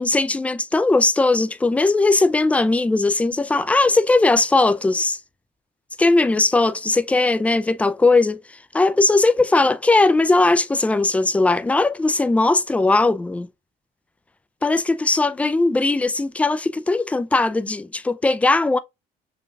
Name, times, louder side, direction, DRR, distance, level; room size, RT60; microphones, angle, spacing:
voice 1, 0.0-5.2 6.0-8.4 8.7-13.5 14.6-18.8, left 3 dB, 10° left, 0.3 m, -19 dB
5.0 x 2.3 x 2.6 m
cardioid pair, 110°, 17 cm